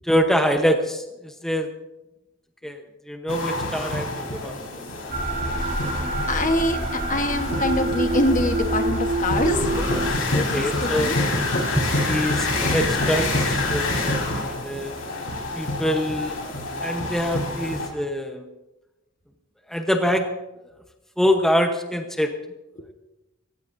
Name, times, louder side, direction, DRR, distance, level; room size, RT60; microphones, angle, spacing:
voice 1, 0.0-1.7 2.6-4.6 10.3-11.2 11.7-14.9 15.5-16.4 16.8-18.5 19.7-20.3 21.2-22.3, equal, ahead, 4 dB, 0.9 m, -25 dB
sound 1, 3.3-17.9, left 2 dB, 85° left, 4.1 m, -27 dB
sound 2, 5.1-10.1, right 2 dB, 50° right, 3.3 m, -26 dB
voice 2, 6.3-6.8 7.1-11.2 22.8-22.9, left 1 dB, 40° left, 6 dB, 1.2 m, -25 dB
25.0 x 16.0 x 2.7 m, 1.0 s
head